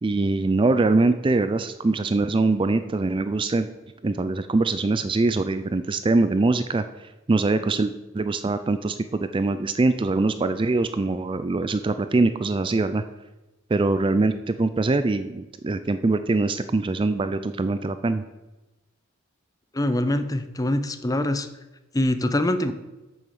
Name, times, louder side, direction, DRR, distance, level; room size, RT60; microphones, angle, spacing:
voice 1, 0.0-3.7 4.0-6.8 7.3-13.0 13.7-18.2, right 3 dB, 25° right, 11 dB, 0.4 m, -23 dB
voice 2, 19.7-21.5 21.9-22.7, left 1 dB, 15° left, 10 dB, 0.6 m, -24 dB
8.7 x 6.9 x 6.6 m, 1.1 s
head